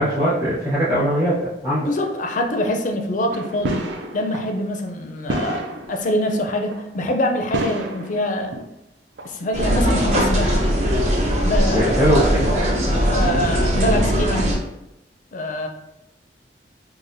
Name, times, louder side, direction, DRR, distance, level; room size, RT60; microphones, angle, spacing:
voice 1, 0.0-1.9 11.7-12.4, equal, 15° right, -12 dB, 1.0 m, -20 dB
voice 2, 1.7-3.9 4.1-5.6 5.9-8.6 9.2-10.6 11.4-12.1 13.1-14.5 15.3-15.7, left 1 dB, 45° left, 4 dB, 0.4 m, -24 dB
sound 1, 3.3-4.6 5.0-5.1 5.3-6.1 6.7-7.0 7.5-8.6 9.2-9.7, right 1 dB, 80° right, 0.5 m, -29 dB
sound 2, 9.5-14.6, equal, 40° right, 0.6 m, -20 dB
4.8 x 2.4 x 2.6 m, 0.87 s
head